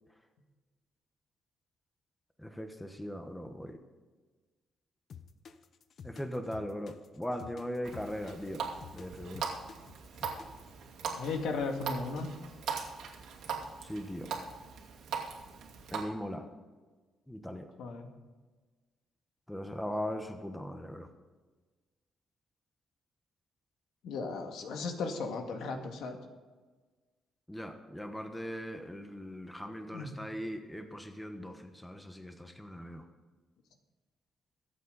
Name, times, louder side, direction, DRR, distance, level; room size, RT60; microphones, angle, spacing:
voice 1, 2.4-3.8 6.0-8.7 8.9-9.5 13.8-14.3 15.9-16.5 17.3-17.7 19.5-21.1 27.5-33.0, equal, 5° left, 6 dB, 1.1 m, -39 dB
sound 1, 5.1-10.7, left 7 dB, 50° left, 0.8 m, -50 dB
Water tap faucet, 7.8-16.0, right 6 dB, 80° right, 2.5 m, -40 dB
voice 2, 11.1-12.3 17.8-18.1 24.0-26.2 29.9-30.2, left 4 dB, 80° left, 4 dB, 2.0 m, -36 dB
23.5 x 8.5 x 4.0 m, 1.3 s
cardioid pair, 140°, 0 cm